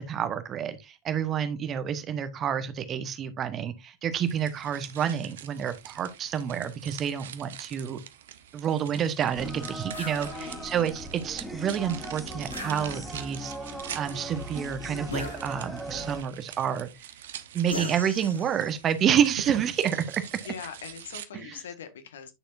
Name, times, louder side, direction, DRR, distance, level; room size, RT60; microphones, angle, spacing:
voice 1, 0.0-8.0 8.5-16.9 17.5-20.2 21.3-21.6, right 8 dB, 30° right, 1.2 m, -29 dB
sound 1, 4.1-21.3, right 10 dB, 60° right, 0.9 m, -44 dB
sound 2, 9.3-16.2, right 1 dB, 5° right, 2.2 m, -39 dB
sound 3, 9.9-10.2 12.5-13.3 15.1-15.9 17.7-18.8, left 2 dB, 85° left, 2.2 m, -38 dB
voice 2, 10.0-10.7 20.4-22.3, left 8 dB, 60° left, 1.6 m, -42 dB
10.0 x 6.7 x 2.6 m
figure-of-eight pair, 90°, 0 cm